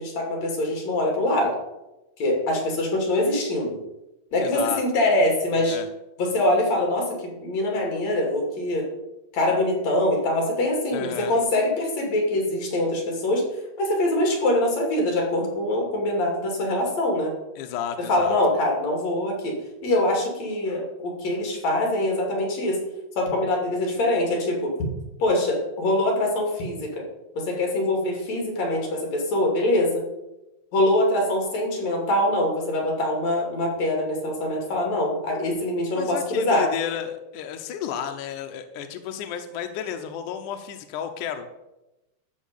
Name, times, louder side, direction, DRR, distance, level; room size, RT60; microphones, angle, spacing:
voice 1, 0.0-1.6 2.2-3.8 4.3-5.8 6.2-8.9 9.3-13.4 13.8-17.3 18.0-19.6 19.8-22.8 23.2-24.7 25.2-27.1 27.3-30.0 30.7-36.7, left 1 dB, 45° left, 0 dB, 3.5 m, -24 dB
voice 2, 4.4-4.8 5.7-5.9 10.9-11.3 17.6-18.4 35.9-41.5, left 9 dB, 75° left, 6 dB, 1.9 m, -32 dB
13.0 x 4.7 x 8.3 m, 0.97 s
omnidirectional pair, 4.5 m